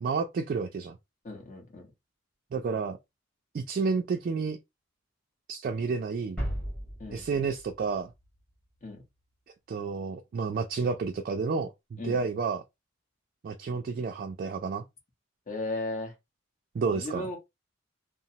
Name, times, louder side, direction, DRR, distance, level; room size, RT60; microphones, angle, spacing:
voice 1, 0.0-0.9 2.5-3.0 3.5-4.6 5.5-6.4 7.1-8.1 9.7-12.6 13.4-14.8 16.7-17.3, right 4 dB, 50° right, 0.3 m, -30 dB
voice 2, 1.2-1.9 7.0-7.2 8.8-9.0 12.0-12.2 15.5-16.1 16.9-17.4, left 2 dB, 40° left, 1.0 m, -36 dB
sound 1, 6.4-9.0, equal, 5° left, 1.4 m, -37 dB
3.0 x 2.0 x 2.7 m
head